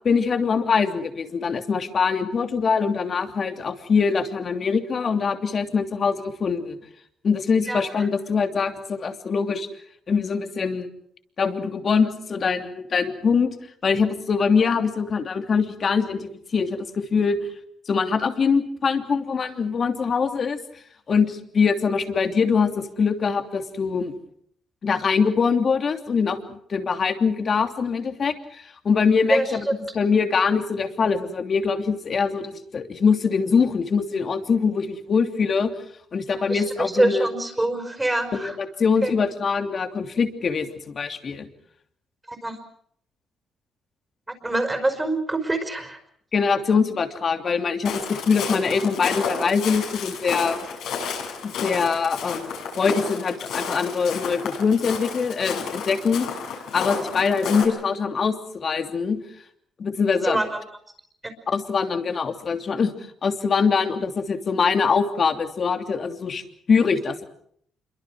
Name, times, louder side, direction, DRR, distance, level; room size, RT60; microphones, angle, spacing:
voice 1, 0.0-6.8 7.2-9.7 10.1-10.9 11.4-13.5 13.8-17.4 17.9-20.6 21.1-24.1 24.8-29.7 29.9-35.7 36.1-37.3 38.3-41.5 46.3-50.7 51.4-56.3 56.7-59.2 59.8-60.4 61.5-62.9 63.2-66.4 66.7-67.2, left 5 dB, 45° left, 6 dB, 3.0 m, -23 dB
voice 2, 7.7-8.1 29.3-29.7 36.3-38.6 39.0-39.1 42.3-42.6 44.4-46.0 60.2-60.6, right 2 dB, 15° right, 5 dB, 5.0 m, -25 dB
Walk footsteps, 47.8-57.6, left 6 dB, 80° left, 7.2 m, -31 dB
27.0 x 23.5 x 6.3 m, 0.65 s
cardioid pair, 90°, 0 cm